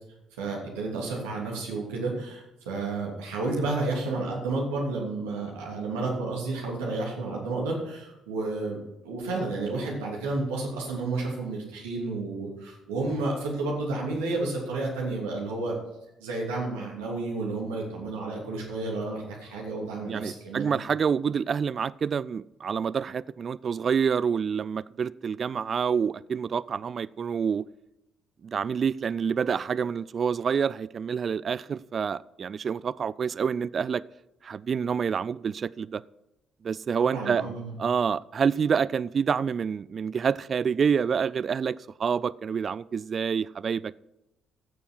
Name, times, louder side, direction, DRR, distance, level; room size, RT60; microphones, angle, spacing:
voice 1, 0.4-15.7 16.2-20.7 37.1-37.7, right 3 dB, 75° right, 2.9 m, -31 dB
voice 2, 20.1-27.6 28.4-34.0 34.4-36.0 36.6-37.4 37.8-44.0, right 6 dB, 45° right, 0.3 m, -27 dB
15.5 x 6.9 x 4.6 m
figure-of-eight pair, 45°, 0 cm